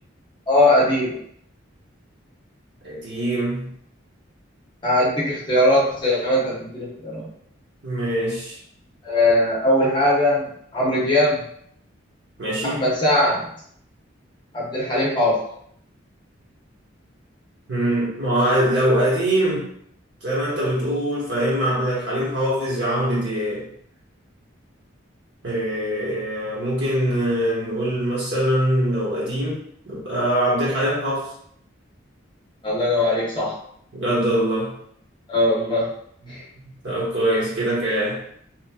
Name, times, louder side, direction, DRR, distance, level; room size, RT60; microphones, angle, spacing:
voice 1, 0.5-1.2 4.8-7.3 9.0-11.4 12.6-13.5 14.5-15.4 32.6-33.5 35.3-35.9 36.3-36.4, left 1 dB, 25° left, -6 dB, 0.7 m, -20 dB
voice 2, 2.8-3.7 7.8-8.6 12.4-12.8 17.7-19.7 20.2-23.7 25.4-31.3 33.9-34.7 36.3-36.4 36.8-38.2, right 1 dB, 60° right, -7 dB, 1.2 m, -23 dB
3.0 x 2.4 x 2.3 m, 0.66 s
head